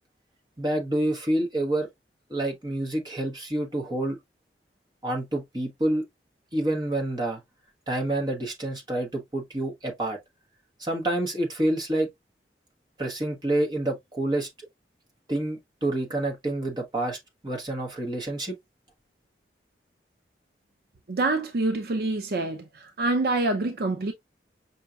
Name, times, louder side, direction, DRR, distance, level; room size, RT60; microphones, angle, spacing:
voice 1, 0.6-1.9 2.3-4.2 5.0-6.0 6.5-7.4 7.9-10.2 10.8-12.1 13.0-14.5 15.3-18.6, right 1 dB, 25° right, 1.1 m, -28 dB
voice 2, 21.1-24.1, right 2 dB, 60° right, 0.5 m, -26 dB
5.4 x 2.8 x 2.3 m
head